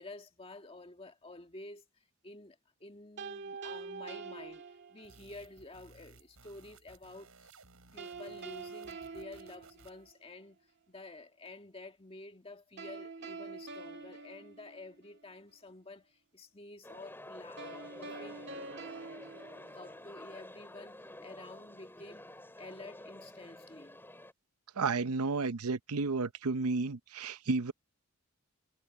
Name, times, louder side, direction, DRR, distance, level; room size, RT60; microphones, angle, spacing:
voice 1, 0.0-7.6 7.9-10.6 10.9-18.4 19.7-22.3 22.6-24.0, left 2 dB, 25° left, 1.8 m, -50 dB
sound 1, 3.2-5.3 8.0-10.4 12.8-15.3 17.6-20.4, right 4 dB, 50° right, 1.8 m, -46 dB
sound 2, 5.0-10.1, right 3 dB, 70° right, 7.8 m, -59 dB
sound 3, 16.8-24.3, left 1 dB, 10° left, 5.7 m, -50 dB
voice 2, 24.8-27.7, right 4 dB, 90° right, 0.7 m, -32 dB
head